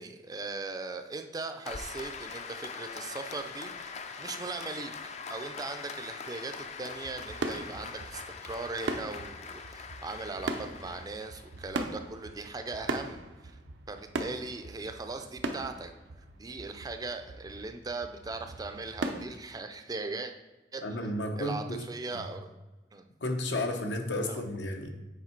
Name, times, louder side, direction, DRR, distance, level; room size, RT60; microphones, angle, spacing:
voice 1, 0.0-4.9 5.3-13.5 13.9-15.9 16.3-20.3 20.7-20.8 21.4-22.5 22.9-23.1 24.3-24.4, right 3 dB, 20° right, 7 dB, 0.4 m, -39 dB
Applause, 1.6-11.7, left 5 dB, 40° left, 0.4 m, -43 dB
sound 1, 6.9-19.2, right 2 dB, 85° right, 0.6 m, -39 dB
voice 2, 20.8-21.8 22.1-22.2 23.2-24.9, left 1 dB, 80° left, 4 dB, 0.9 m, -32 dB
7.3 x 3.6 x 4.4 m, 1.1 s
head